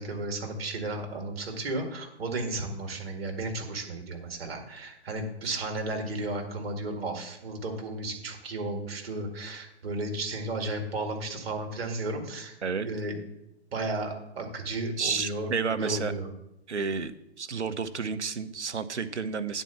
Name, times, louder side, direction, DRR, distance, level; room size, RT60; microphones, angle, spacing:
voice 1, 0.0-12.5 12.8-13.2 13.7-16.3, right 2 dB, 60° right, 3 dB, 2.1 m, -34 dB
voice 2, 15.0-16.1 16.7-17.1 17.4-19.6, right 5 dB, 80° right, 11 dB, 0.8 m, -31 dB
9.2 x 4.6 x 7.0 m, 0.83 s
figure-of-eight pair, 125°, 34 cm